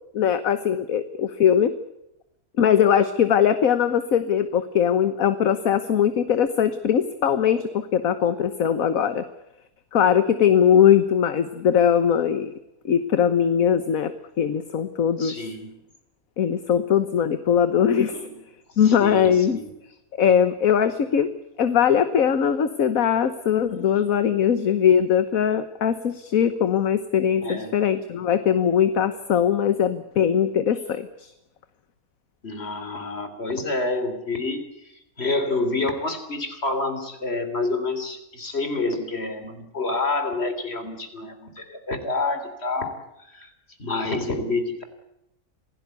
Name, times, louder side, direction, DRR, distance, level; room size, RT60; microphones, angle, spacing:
voice 1, 0.1-1.7 2.6-9.3 9.9-12.5 12.9-14.1 14.4-15.4 16.4-18.1 18.8-19.6 20.2-31.3, left 8 dB, 65° left, 11 dB, 1.5 m, -20 dB
voice 2, 15.2-15.8 18.1-18.4 18.8-19.7 27.4-27.8 32.4-43.5 43.8-44.8, left 3 dB, 45° left, 9 dB, 3.7 m, -28 dB
26.5 x 17.0 x 8.2 m, 0.85 s
omnidirectional pair, 1.6 m